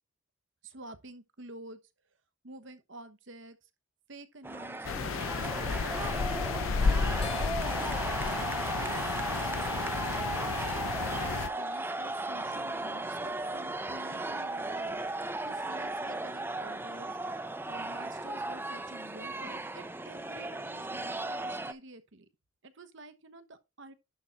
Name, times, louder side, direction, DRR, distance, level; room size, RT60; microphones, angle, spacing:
voice 1, 0.6-1.8 2.4-3.7 4.1-5.3 5.6-8.3 8.8-15.0 15.4-22.3 22.6-23.9, right 2 dB, 70° right, 1.1 m, -49 dB
sound 1, 4.4-21.7, right 2 dB, 10° right, 0.6 m, -36 dB
sound 2, 4.8-11.5, left 5 dB, 85° left, 0.5 m, -32 dB
sound 3, 6.2-18.7, left 6 dB, 30° left, 2.6 m, -58 dB
11.0 x 3.9 x 4.4 m
head